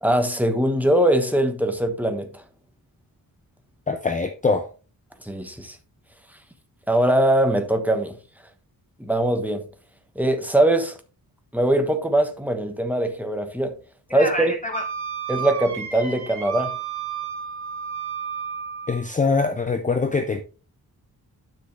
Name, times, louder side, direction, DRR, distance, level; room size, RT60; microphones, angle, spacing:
voice 1, 0.0-2.4 5.2-5.8 6.9-8.2 9.0-9.6 10.1-11.0 11.5-13.8 14.1-14.5 15.3-16.7, right 1 dB, 5° right, 1.2 m, -21 dB
voice 2, 3.9-4.7 14.1-14.9 18.9-20.4, left 4 dB, 20° left, 0.6 m, -24 dB
Wind instrument woodwind instrument, 14.7-19.1, right 8 dB, 50° right, 2.6 m, -32 dB
10.0 x 6.2 x 3.3 m
wide cardioid pair, 150°, 37 cm